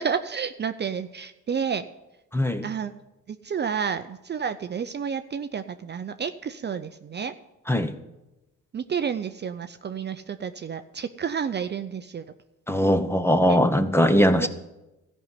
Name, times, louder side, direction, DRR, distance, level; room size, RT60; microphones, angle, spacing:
voice 1, 0.0-1.8 2.6-2.9 3.3-7.3 8.7-12.3 13.5-13.6 14.4-14.5, right 7 dB, 35° right, 9 dB, 0.6 m, -30 dB
voice 2, 2.3-2.7 7.7-7.9 12.7-14.5, equal, 10° left, 10 dB, 0.9 m, -20 dB
13.5 x 5.5 x 9.5 m, 0.97 s
cardioid pair, 90°, 30 cm